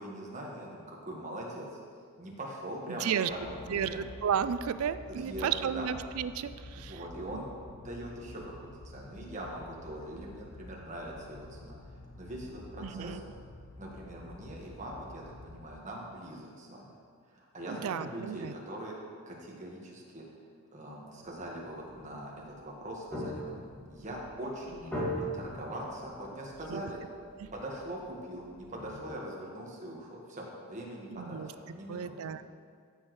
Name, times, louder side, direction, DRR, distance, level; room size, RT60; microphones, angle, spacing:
voice 1, 0.0-1.7 2.2-4.0 5.2-5.5 5.7-5.9 6.8-7.5 7.8-11.8 12.2-13.2 13.8-17.0 17.3-18.9 19.3-20.2 20.7-23.5 23.9-27.0 27.5-32.2, right 1 dB, 35° right, -3 dB, 1.6 m, -42 dB
voice 2, 2.9-3.3 3.7-7.0 7.3-7.4 12.8-13.2 17.7-18.5 26.7-26.8 27.3-27.5 31.1-31.5 31.9-32.4, right 8 dB, 65° right, 13 dB, 0.4 m, -33 dB
sound 1, 3.3-15.7, left 2 dB, 75° left, 0.8 m, -49 dB
sound 2, 21.2-29.1, equal, 10° left, 2.0 m, -41 dB
14.5 x 6.2 x 3.2 m, 2.1 s
head